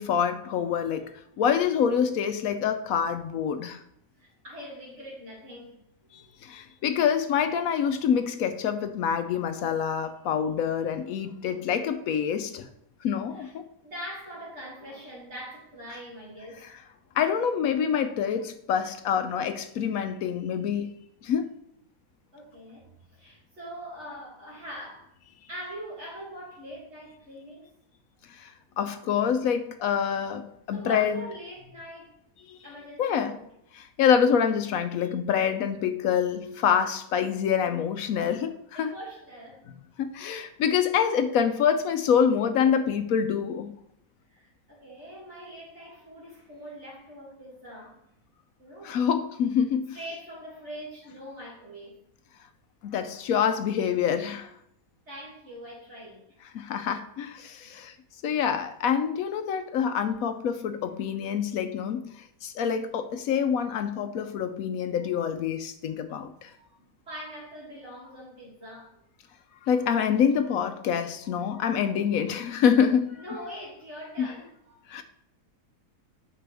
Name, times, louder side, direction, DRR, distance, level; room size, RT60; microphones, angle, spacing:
voice 1, 0.0-3.8 6.1-12.7 13.0-13.7 17.1-20.9 21.2-21.5 28.3-31.2 32.5-32.6 33.0-33.3 33.7-38.9 40.0-43.7 48.8-50.0 52.8-54.5 56.5-57.9 58.2-66.5 69.6-73.2 74.2-74.3 74.9-75.0, left 7 dB, 75° left, 1.0 m, -26 dB
voice 2, 4.2-5.7 6.1-6.2 13.3-13.5 13.8-16.8 22.3-25.1 25.5-27.7 30.7-32.1 32.6-33.5 38.7-39.6 44.3-48.0 48.6-49.0 49.9-52.0 55.1-56.2 57.6-57.7 66.6-69.0 73.2-74.8, equal, 45° right, 2.8 m, -43 dB
9.6 x 5.9 x 3.4 m
omnidirectional pair, 1.6 m